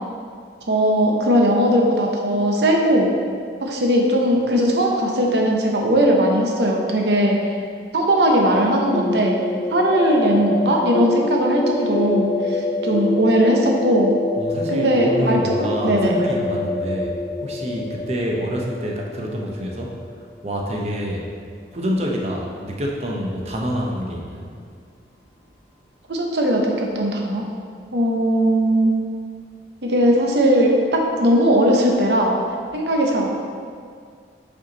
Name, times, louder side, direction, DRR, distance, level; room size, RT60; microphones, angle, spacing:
voice 1, 0.7-3.1 3.6-7.6 7.9-9.4 9.7-14.1 14.7-16.2 26.1-27.4 27.9-28.9 29.8-32.3 32.7-33.3, equal, 70° right, 0 dB, 0.8 m, -19 dB
sound 1, 8.9-20.6, left 2 dB, 40° left, 0.4 m, -26 dB
voice 2, 14.4-21.3 21.7-24.5, equal, 35° right, -1 dB, 0.6 m, -27 dB
5.3 x 4.4 x 4.0 m, 2.1 s
head